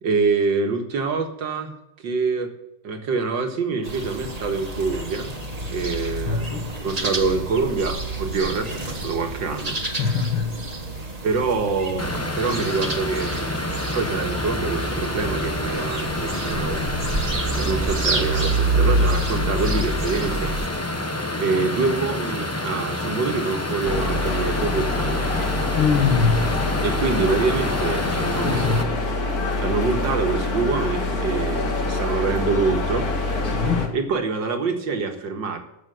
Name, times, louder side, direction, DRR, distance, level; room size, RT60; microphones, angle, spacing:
voice 1, 0.0-2.5 2.8-5.3 5.7-6.5 6.8-10.3 11.2-16.9 17.5-21.0 21.4-25.5 26.8-28.9 29.6-33.1 33.9-35.6, right 4 dB, 60° right, 4 dB, 2.2 m, -26 dB
sound 1, 3.8-20.7, right 2 dB, 20° right, 1.5 m, -28 dB
voice 2, 6.3-6.7 9.8-10.5 25.8-26.5 28.4-28.9 33.4-33.9, left 5 dB, 75° left, 1 dB, 2.3 m, -22 dB
sound 2, 12.0-28.8, left 1 dB, 25° left, 0.3 m, -28 dB
sound 3, 23.8-33.9, left 2 dB, 45° left, 2.3 m, -25 dB
14.5 x 6.7 x 7.9 m, 0.86 s
omnidirectional pair, 2.3 m